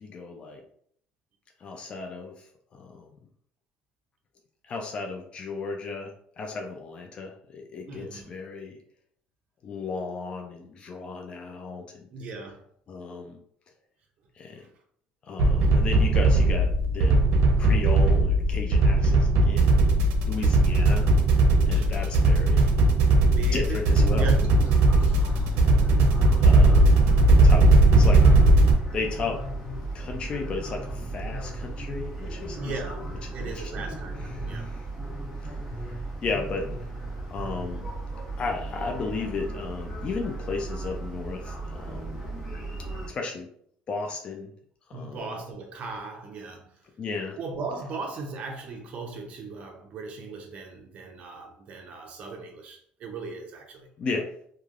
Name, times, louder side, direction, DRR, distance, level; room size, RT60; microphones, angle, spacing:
voice 1, 0.0-0.6 1.6-2.3 2.7-3.1 4.7-8.8 9.6-12.1 12.9-13.4 14.4-14.6 15.3-17.2 17.6-19.9 20.2-21.1 21.6-22.7 23.5-24.3 26.4-26.9 27.4-27.7 28.0-28.2 28.9-29.4 29.9-32.6 33.4-33.7 34.5-34.7 36.2-36.7 37.3-37.9 38.4-42.1 43.1-43.5 43.9-44.5 44.9-45.2 47.0-47.4 54.0-54.3, left 4 dB, 30° left, 0.3 m, -34 dB
voice 2, 7.9-8.4 12.1-12.6 14.6-14.7 15.7-15.8 20.3-20.7 21.7-22.3 23.2-25.6 32.6-34.7 44.9-46.7 47.4-53.9, right 3 dB, 40° right, 0.6 m, -38 dB
sound 1, 15.4-28.7, right 2 dB, 85° right, 0.5 m, -19 dB
sound 2, 24.5-43.1, right 2 dB, 10° left, 1.1 m, -35 dB
3.1 x 2.2 x 2.4 m
cardioid pair, 170°, 3 cm